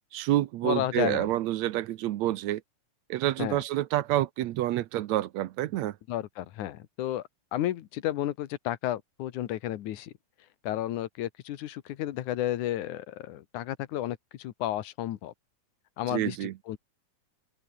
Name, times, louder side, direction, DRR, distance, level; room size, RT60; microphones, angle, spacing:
voice 1, 0.1-2.6 3.1-6.0 16.1-16.5, right 14 dB, 75° right, 2.0 m, -28 dB
voice 2, 0.6-1.3 3.4-3.6 6.1-7.2 7.5-10.1 10.6-15.3 16.0-16.8, left 13 dB, 85° left, 2.7 m, -32 dB
open air
omnidirectional pair, 3.4 m